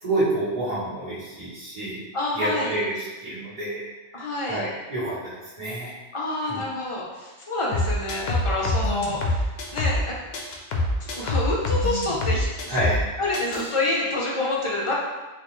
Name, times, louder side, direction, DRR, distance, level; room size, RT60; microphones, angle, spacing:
voice 1, 0.0-2.0 2.3-3.9 4.1-6.0 6.5-6.6 12.7-13.0, right 1 dB, 40° right, -13 dB, 1.4 m, -28 dB
voice 2, 2.1-2.8 4.1-4.6 6.1-10.2 11.0-12.8 13.2-14.9, left 2 dB, 40° left, -4 dB, 0.5 m, -27 dB
sound 1, 7.7-10.1 10.3-13.1 13.3-13.7, left 2 dB, 65° left, 0.8 m, -25 dB
4.2 x 2.4 x 3.0 m, 1.2 s
omnidirectional pair, 1.2 m